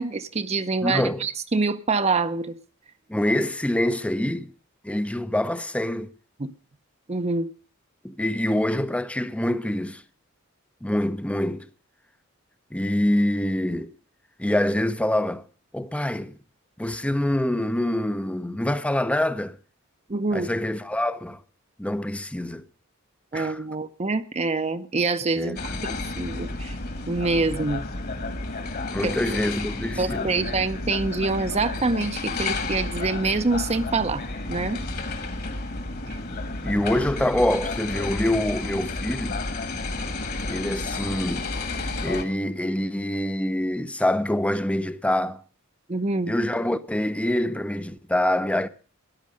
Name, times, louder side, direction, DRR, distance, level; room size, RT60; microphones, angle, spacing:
voice 1, 0.0-2.5 6.4-6.5 7.1-7.5 20.1-20.5 23.3-26.8 27.1-27.9 29.0-29.1 30.0-34.8 36.1-36.2 45.9-46.3, right 3 dB, 30° right, 0.7 m, -26 dB
voice 2, 0.8-1.3 3.1-4.5 4.8-6.1 8.0-10.0 10.8-11.7 12.7-13.9 14.4-15.4 15.7-16.4 16.8-19.6 20.3-21.4 21.8-22.7 23.3-23.6 25.4-25.8 28.9-30.3 36.6-39.4 40.4-41.5 42.0-45.4 46.3-48.7, left 1 dB, 5° left, 0.6 m, -25 dB
sound 1, 25.6-42.2, left 3 dB, 45° left, 1.8 m, -31 dB
14.0 x 10.5 x 6.4 m
head